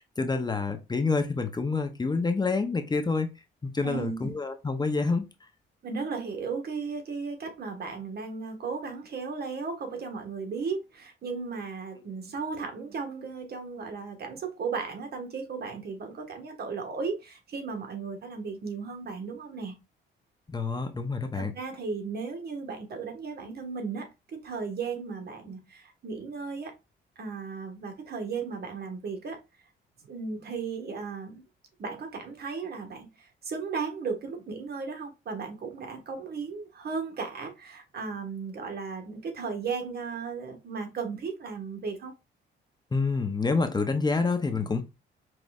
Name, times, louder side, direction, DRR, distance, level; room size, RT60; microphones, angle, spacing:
voice 1, 0.2-3.3 3.6-5.3 20.5-21.5 42.9-44.8, left 4 dB, 20° left, 0.6 m, -27 dB
voice 2, 3.8-4.3 5.8-19.7 21.3-26.7 27.2-29.4 30.0-31.4 31.8-42.1, right 5 dB, 55° right, 1.3 m, -35 dB
5.2 x 3.1 x 2.3 m
cardioid pair, 90°, 20 cm